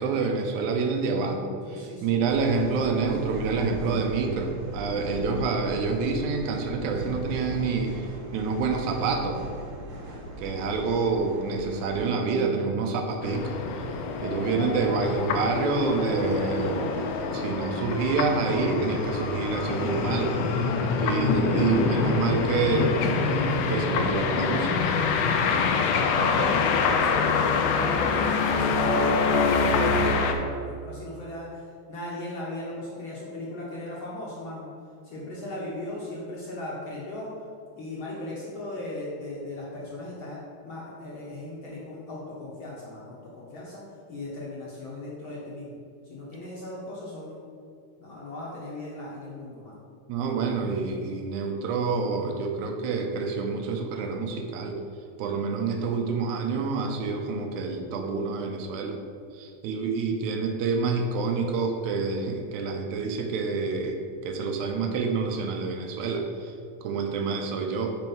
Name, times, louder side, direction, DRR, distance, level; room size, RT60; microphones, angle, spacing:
voice 1, 0.0-9.4 10.4-13.6 14.2-17.0 17.3-20.7 21.0-23.0 23.7-25.0 50.1-54.8 55.2-59.0 59.3-66.5 66.8-68.0, right 4 dB, 85° right, 4 dB, 2.2 m, -27 dB
voice 2, 1.6-2.2 20.6-21.5 26.8-34.7 35.0-37.3 37.7-45.8 46.0-47.4 48.0-49.8, left 2 dB, 60° left, -6 dB, 1.4 m, -38 dB
sound 1, 2.2-12.0, equal, 60° right, 2.2 m, -38 dB
sound 2, 13.2-30.3, left 4 dB, 75° left, 1.7 m, -25 dB
5.8 x 4.5 x 5.4 m, 2.3 s
omnidirectional pair, 3.3 m